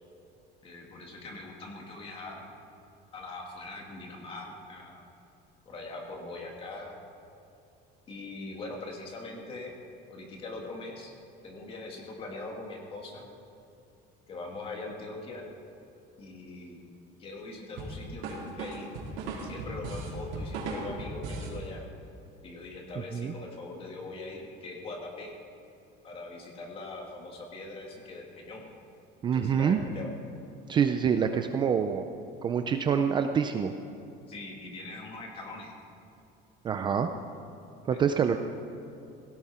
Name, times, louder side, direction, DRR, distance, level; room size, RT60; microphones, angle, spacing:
voice 1, 0.6-2.5 3.1-5.1 5.7-7.0 8.1-9.7 10.1-11.1 11.4-13.3 14.3-15.5 16.2-16.9 17.2-19.0 19.4-21.8 22.4-25.3 26.0-28.6 29.3-30.1 34.3-35.7, left 2 dB, 30° left, 0 dB, 2.3 m, -42 dB
sound 1, 17.8-21.6, right 3 dB, 80° right, 3.9 m, -37 dB
voice 2, 29.2-29.8 30.7-32.0 32.4-33.7 36.6-37.1 37.9-38.4, right 7 dB, 25° right, 7 dB, 0.5 m, -26 dB
17.0 x 17.0 x 4.4 m, 2.8 s
cardioid pair, 175°, 19 cm